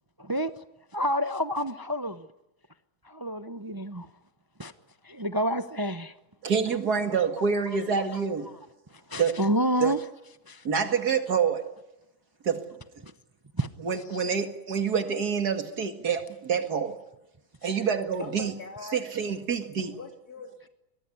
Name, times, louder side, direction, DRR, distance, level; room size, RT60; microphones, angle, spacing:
voice 1, 0.2-0.5 0.9-2.3 3.0-4.1 4.6-4.7 5.0-6.1 9.1-10.0 10.5-10.6 13.0-13.1 13.6-13.7 14.1-14.2, equal, 20° right, 0.6 m, -28 dB
voice 2, 6.4-8.5 9.2-9.4 9.8-9.9 10.6-11.7 12.4-12.6 13.8-17.0 17.6-18.5 18.9-20.0, right 6 dB, 90° right, 2.6 m, -27 dB
voice 3, 18.2-20.7, left 3 dB, 75° left, 3.6 m, -43 dB
23.0 x 18.5 x 9.9 m
omnidirectional pair, 1.6 m